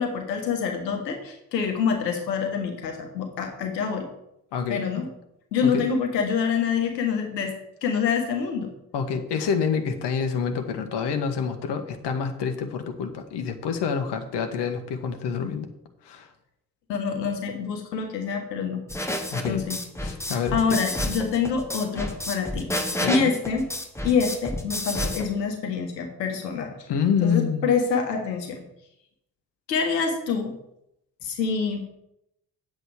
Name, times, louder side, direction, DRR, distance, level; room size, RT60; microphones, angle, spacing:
voice 1, 0.0-4.1 4.7-5.1 5.5-7.5 7.8-8.7 16.9-18.8 19.4-19.8 20.5-23.7 24.0-26.7 27.2-28.6 29.7-30.5 31.2-31.8, left 6 dB, 80° left, 4 dB, 1.5 m, -26 dB
voice 2, 4.5-4.8 5.6-5.8 8.9-15.7 16.0-16.3 19.3-19.6 20.0-20.8 23.0-23.3 26.9-27.7, left 6 dB, 55° left, 6 dB, 1.5 m, -27 dB
sound 1, 18.9-25.2, left 1 dB, 5° left, 1.9 m, -30 dB
9.0 x 8.0 x 4.9 m, 0.81 s
figure-of-eight pair, 45°, 49 cm